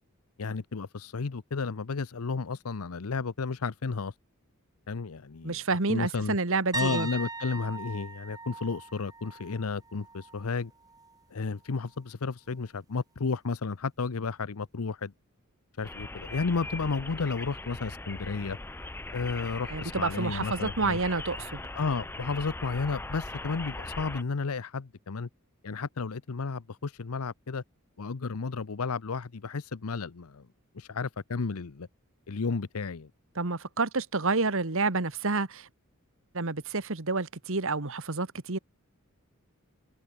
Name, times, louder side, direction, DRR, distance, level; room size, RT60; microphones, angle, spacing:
voice 1, 0.4-4.1 4.9-5.6 5.9-6.4 6.7-10.7 11.3-15.1 15.8-18.6 19.1-21.0 21.8-25.3 25.6-27.6 28.0-30.4 30.7-31.9 32.3-33.1, left 4 dB, 80° left, 0.7 m, -32 dB
voice 2, 5.4-7.1 19.7-21.6 33.3-35.7 36.3-38.6, right 3 dB, 65° right, 1.7 m, -29 dB
sound 1, 6.7-10.5 10.8-11.2 14.0-14.1, right 3 dB, 15° right, 2.9 m, -39 dB
sound 2, 15.8-24.2, left 2 dB, 10° left, 0.6 m, -40 dB
head